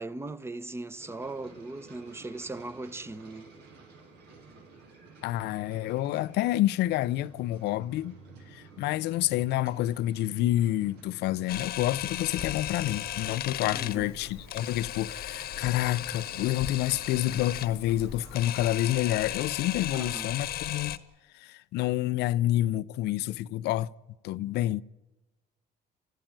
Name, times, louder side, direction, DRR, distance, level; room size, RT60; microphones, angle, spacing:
voice 1, 0.0-3.5 13.7-14.1 19.9-20.3, right 2 dB, 15° right, 1.1 m, -39 dB
sound 1, 1.0-18.4, right 3 dB, 80° right, 7.7 m, -52 dB
voice 2, 5.2-8.2 8.5-21.0 21.3-23.9 24.2-24.8, left 14 dB, 80° left, 0.7 m, -28 dB
Camera, 11.5-21.0, left 12 dB, 65° left, 1.3 m, -36 dB
29.0 x 15.0 x 9.0 m
cardioid pair, 110°, 17 cm